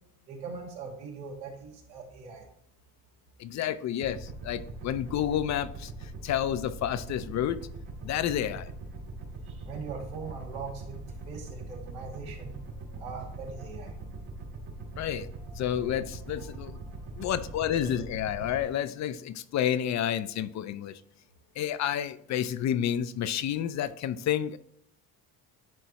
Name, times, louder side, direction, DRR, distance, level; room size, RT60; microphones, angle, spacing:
voice 1, 0.3-2.5 9.5-11.0 11.3-12.5 13.0-13.9, right 5 dB, 90° right, -1 dB, 2.3 m, -41 dB
voice 2, 3.4-5.9 6.2-7.6 8.0-8.7 15.0-15.3 15.5-16.8 17.2-20.9 21.6-24.6, left 10 dB, 50° left, 13 dB, 0.5 m, -30 dB
sound 1, 4.0-18.6, right 2 dB, 70° right, 2.4 m, -42 dB
10.5 x 4.5 x 3.0 m, 0.71 s
cardioid pair, 110°, 37 cm